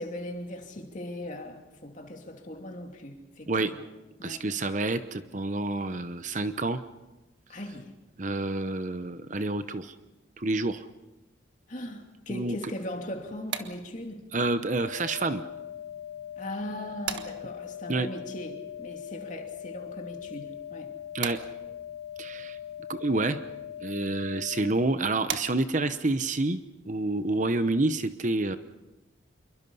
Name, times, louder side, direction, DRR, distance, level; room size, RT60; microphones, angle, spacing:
voice 1, 0.0-3.9 4.2-4.5 7.5-7.9 11.7-14.3 16.4-20.9, left 1 dB, 40° left, 2.9 m, -39 dB
voice 2, 4.2-6.8 8.2-9.9 10.4-10.9 12.3-12.6 14.3-15.4 17.9-18.1 21.1-21.4 22.2-22.6 22.9-23.4 23.8-28.6, right 2 dB, 40° right, 0.9 m, -28 dB
sound 1, 13.1-26.0, right 7 dB, 70° right, 1.5 m, -43 dB
sound 2, 14.7-24.7, left 10 dB, 65° left, 3.1 m, -41 dB
27.5 x 23.0 x 5.6 m
head